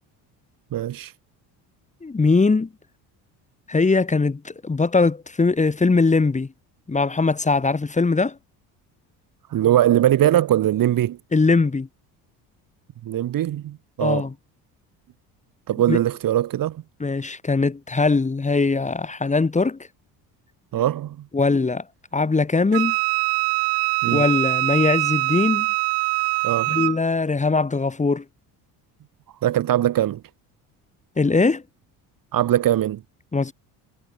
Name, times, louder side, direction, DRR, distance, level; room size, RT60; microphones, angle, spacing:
voice 1, 0.7-1.1 9.5-11.2 13.0-14.2 15.7-16.8 20.7-21.3 24.0-24.2 26.4-26.8 29.4-30.2 32.3-33.0, right 12 dB, 55° right, 2.2 m, -21 dB
voice 2, 2.0-2.7 3.7-6.5 6.9-8.4 11.3-11.9 14.0-14.3 15.9-16.0 17.0-19.8 21.3-21.8 22.1-22.9 24.1-25.7 26.7-28.2 31.2-31.6 33.3-33.5, left 3 dB, 15° left, 2.5 m, -21 dB
Wind instrument woodwind instrument, 22.7-27.0, right 30 dB, 85° right, 0.9 m, -23 dB
cardioid pair, 110°, 41 cm